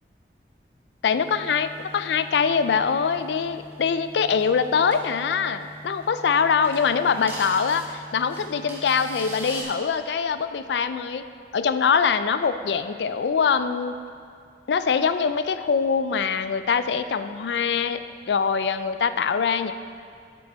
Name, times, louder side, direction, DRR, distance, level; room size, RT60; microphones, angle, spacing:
voice 1, 1.0-11.2 11.5-14.0 14.7-18.0 18.3-19.7, left 6 dB, 75° left, 11 dB, 0.4 m, -23 dB
sound 1, 1.1-9.6, equal, 10° right, 1.8 m, -42 dB
9.4 x 7.6 x 4.2 m, 2.3 s
head